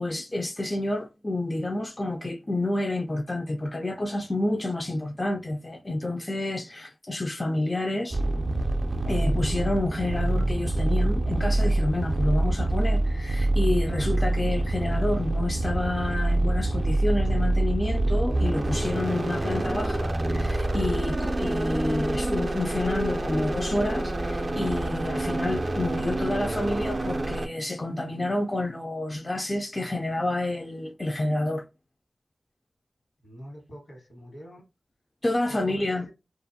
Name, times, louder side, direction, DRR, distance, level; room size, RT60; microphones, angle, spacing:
voice 1, 0.0-8.2 9.0-31.7 35.2-36.1, left 2 dB, 30° left, 0.3 m, -29 dB
sound 1, 8.1-27.5, right 2 dB, 45° right, 0.3 m, -26 dB
voice 2, 33.2-34.6 35.5-36.1, equal, 70° left, 1.3 m, -45 dB
2.5 x 2.4 x 2.6 m
wide cardioid pair, 55°, 0 cm